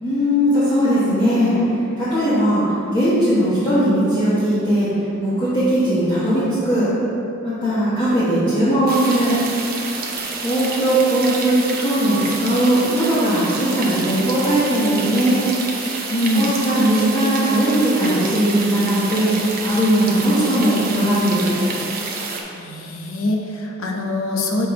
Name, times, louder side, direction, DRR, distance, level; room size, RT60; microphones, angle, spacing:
voice 1, 0.0-1.6 2.0-2.6 2.9-4.9 5.2-6.9 7.4-9.3 10.4-15.4 16.4-19.3 19.6-21.5, right 1 dB, 25° left, -12 dB, 1.2 m, -18 dB
sound 1, 8.9-22.4, right 4 dB, 45° right, 0.7 m, -28 dB
voice 2, 16.1-16.5 22.5-24.7, left 1 dB, 85° left, 0 dB, 0.8 m, -23 dB
6.7 x 3.9 x 4.8 m, 2.8 s
head